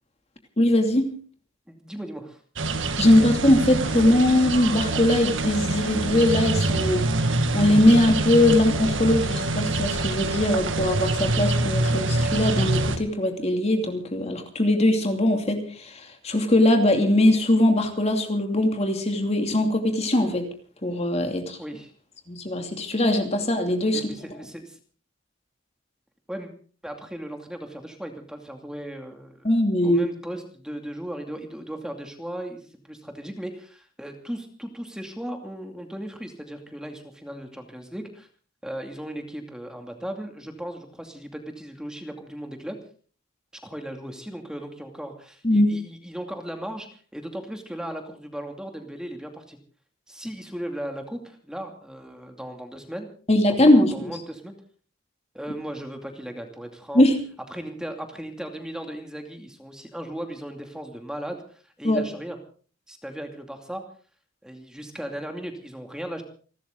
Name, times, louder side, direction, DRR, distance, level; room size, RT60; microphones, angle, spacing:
voice 1, 0.6-1.1 3.0-7.1 7.5-20.5 20.8-21.6 22.3-24.1 29.4-30.0 45.4-45.7 53.3-54.1 56.9-57.2 61.8-62.0, left 1 dB, 30° left, 5 dB, 2.7 m, -21 dB
voice 2, 1.7-2.4 21.6-21.9 23.9-24.8 26.3-26.5 26.8-29.6 29.8-38.3 38.6-42.8 43.5-49.6 50.1-53.1 53.5-54.5 55.3-57.0 57.5-62.4 62.9-63.8 64.4-66.2, right 1 dB, 5° right, 4 dB, 2.5 m, -37 dB
sound 1, 2.6-13.0, right 2 dB, 65° right, 1.9 m, -25 dB
29.0 x 13.0 x 3.9 m, 0.41 s
head